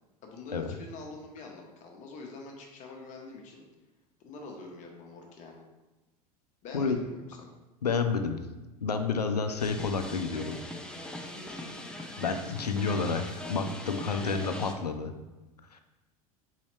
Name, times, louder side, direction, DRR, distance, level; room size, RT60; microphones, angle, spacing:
voice 1, 0.2-3.7 4.2-5.6 6.6-7.5 11.3-11.9, left 3 dB, 40° left, 1 dB, 0.8 m, -45 dB
voice 2, 7.8-8.5 8.8-10.6 12.2-15.1 15.7-15.8, left 5 dB, 85° left, 7 dB, 0.4 m, -30 dB
sound 1, 9.6-14.7, left 1 dB, 5° left, 0.4 m, -41 dB
4.0 x 4.0 x 3.1 m, 1.1 s
figure-of-eight pair, 80°, 20 cm